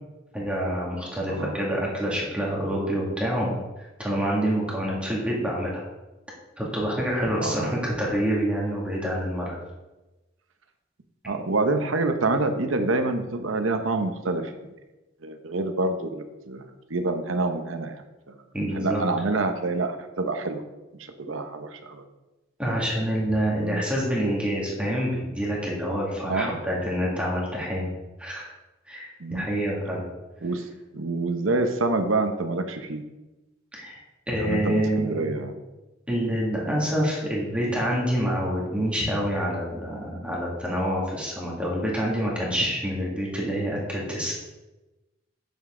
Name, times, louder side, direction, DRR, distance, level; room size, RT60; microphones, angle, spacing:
voice 1, 0.3-5.8 6.6-9.6 18.5-19.0 22.6-27.9 28.2-28.5 28.9-30.0 33.7-34.0 34.3-35.2 36.1-44.3, equal, 5° right, -4 dB, 2.1 m, -27 dB
voice 2, 7.4-7.7 11.3-14.5 15.2-16.6 16.9-18.0 18.7-20.6 21.2-22.0 23.6-23.8 26.3-26.6 29.2-29.5 30.4-30.6 30.9-33.0 34.4-35.5, right 3 dB, 85° right, 7 dB, 0.9 m, -27 dB
9.1 x 7.1 x 3.8 m, 1.1 s
head